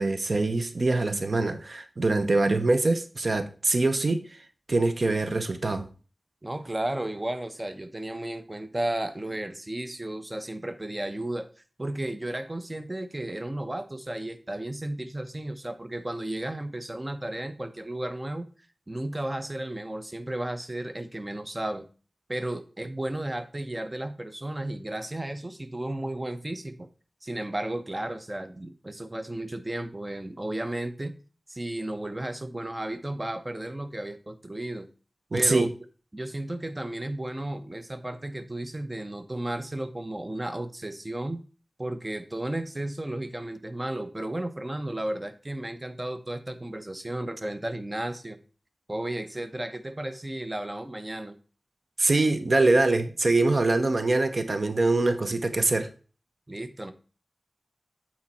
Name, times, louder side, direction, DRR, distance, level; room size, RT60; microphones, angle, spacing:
voice 1, 0.0-4.2 4.7-5.9 35.3-35.7 52.0-55.9, right 2 dB, 60° right, 9 dB, 0.7 m, -24 dB
voice 2, 6.4-11.5 11.8-18.5 18.9-21.9 22.3-26.9 27.2-31.1 31.5-34.9 35.3-35.7 36.1-41.4 41.8-48.4 48.9-51.3 56.5-56.9, right 1 dB, 25° right, 9 dB, 0.8 m, -33 dB
8.5 x 4.3 x 4.2 m, 0.36 s
wide cardioid pair, 65°, 0 cm